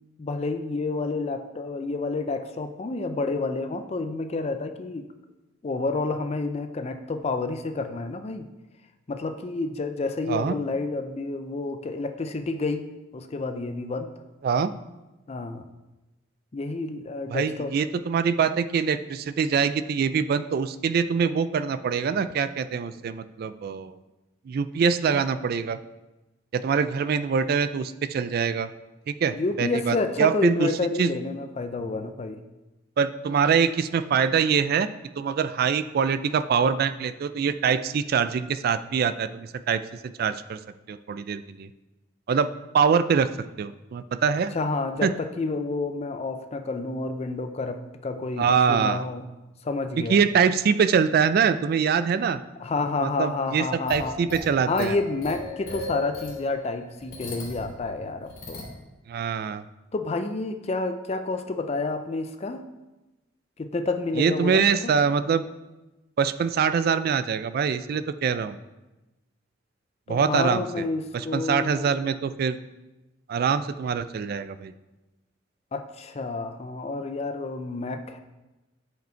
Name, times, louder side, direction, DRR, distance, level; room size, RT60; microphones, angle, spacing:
voice 1, 0.2-5.1 5.6-8.5 9.1-12.9 13.1-14.1 15.3-15.7 16.5-17.7 29.3-32.4 44.5-49.2 49.6-50.2 52.6-54.2 54.7-58.6 59.9-62.6 63.6-64.9 70.1-71.9 75.7-78.2, left 3 dB, 30° left, 8 dB, 0.4 m, -29 dB
voice 2, 17.3-24.0 24.5-25.8 26.5-28.7 29.1-30.7 31.0-31.1 33.0-34.9 35.2-39.8 40.2-40.6 40.9-41.7 42.3-42.5 42.7-43.3 43.6-44.5 45.0-45.1 48.4-49.0 50.1-52.4 53.0-54.9 59.1-59.6 64.2-65.4 66.2-68.6 70.1-70.8 71.1-72.6 73.3-74.7, right 6 dB, 50° right, 13 dB, 0.3 m, -24 dB
sound 1, 53.9-57.7 58.2-58.7, left 2 dB, 50° left, 2.2 m, -37 dB
8.0 x 5.2 x 4.4 m, 1.0 s
head